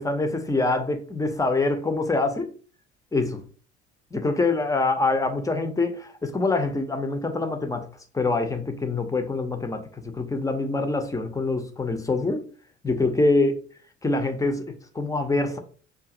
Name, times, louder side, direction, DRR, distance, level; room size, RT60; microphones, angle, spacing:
voice 1, 0.0-2.5 3.1-3.4 4.1-7.9 8.1-12.5 12.8-13.6 14.0-15.6, left 3 dB, 10° left, 0.6 m, -25 dB
4.8 x 2.6 x 2.5 m
figure-of-eight pair, 55°, 34 cm